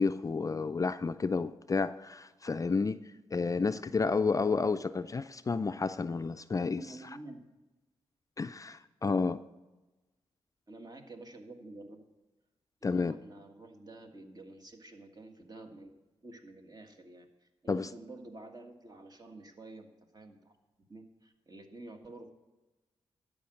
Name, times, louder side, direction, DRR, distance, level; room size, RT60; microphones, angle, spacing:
voice 1, 0.0-3.0 3.3-6.8 8.4-9.4 12.8-13.2 17.7-17.9, left 4 dB, 30° left, 12 dB, 0.4 m, -30 dB
voice 2, 6.7-7.4 10.7-12.0 12.9-15.9 16.2-22.3, right 2 dB, 40° right, 4 dB, 1.7 m, -50 dB
12.0 x 5.1 x 7.7 m, 1.1 s
cardioid pair, 60°, 11 cm